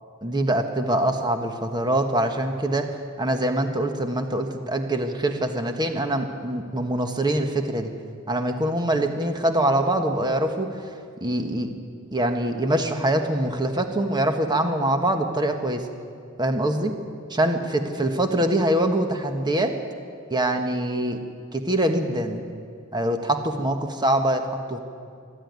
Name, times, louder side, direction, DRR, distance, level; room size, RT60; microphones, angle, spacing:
voice 1, 0.2-7.9 8.3-10.7 11.2-11.7 12.1-15.8 16.4-16.9 17.3-19.7 20.3-21.2 21.5-22.4 22.9-24.4 24.7-24.8, right 1 dB, 20° right, 5 dB, 1.4 m, -24 dB
25.0 x 12.5 x 9.5 m, 2.3 s
head